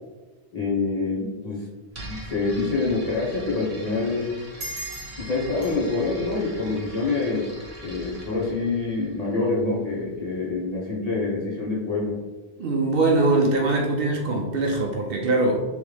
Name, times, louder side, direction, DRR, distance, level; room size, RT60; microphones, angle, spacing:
voice 1, 0.5-1.7 2.1-4.3 5.2-7.5 7.8-12.2, left 3 dB, 35° left, -5 dB, 1.0 m, -26 dB
sound 1, 1.9-9.7, right 1 dB, 35° right, 0.9 m, -42 dB
sound 2, 4.6-7.7, right 2 dB, 90° right, 1.3 m, -40 dB
voice 2, 12.6-15.6, right 2 dB, 65° right, 1 dB, 0.7 m, -22 dB
3.5 x 3.2 x 3.3 m, 1.2 s
omnidirectional pair, 1.1 m